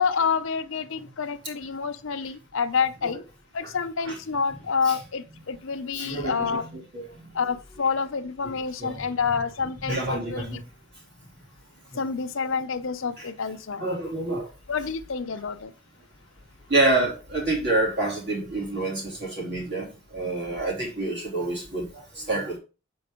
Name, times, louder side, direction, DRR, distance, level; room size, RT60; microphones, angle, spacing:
voice 1, 0.0-3.2 3.5-6.7 7.3-10.6 12.0-13.9 14.7-15.7, left 5 dB, 70° left, 0.7 m, -28 dB
voice 2, 6.0-7.1 8.8-9.0 9.8-10.6 11.9-12.0 13.2-13.3 13.8-14.5 16.7-19.9 20.1-22.6, right 2 dB, 55° right, 2.8 m, -27 dB
7.7 x 5.3 x 3.6 m
head